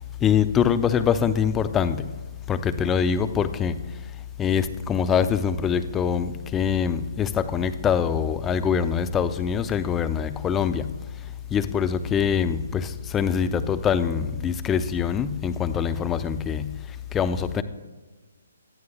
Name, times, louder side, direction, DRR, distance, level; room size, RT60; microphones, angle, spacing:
voice 1, 0.0-2.1 2.5-17.6, left 7 dB, 15° left, 0.6 m, -24 dB
18.0 x 12.5 x 2.4 m
figure-of-eight pair, 135°, 0 cm